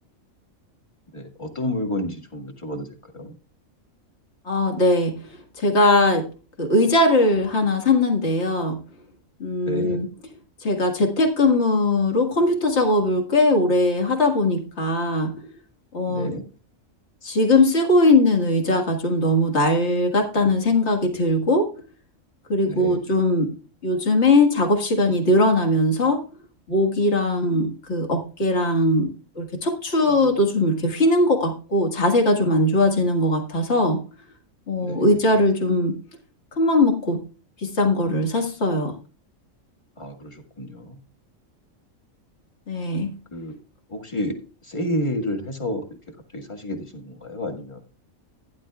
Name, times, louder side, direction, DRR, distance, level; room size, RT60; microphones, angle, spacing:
voice 1, 1.1-2.9 3.1-3.3 9.7-10.0 16.1-16.4 22.6-23.0 30.1-30.2 34.8-35.1 40.0-41.0 43.3-43.6 43.9-44.4 44.6-45.8 46.3-47.8, left 1 dB, 20° left, 2 dB, 1.7 m, -30 dB
voice 2, 4.5-6.2 6.6-8.8 9.4-10.1 10.6-15.3 15.9-16.4 17.2-21.7 22.5-23.5 23.8-26.2 26.7-29.1 29.4-34.0 34.7-35.9 36.6-37.2 37.6-38.9 42.7-43.1, left 1 dB, 55° left, 2 dB, 2.1 m, -20 dB
15.5 x 10.5 x 2.3 m, 0.37 s
omnidirectional pair, 1.4 m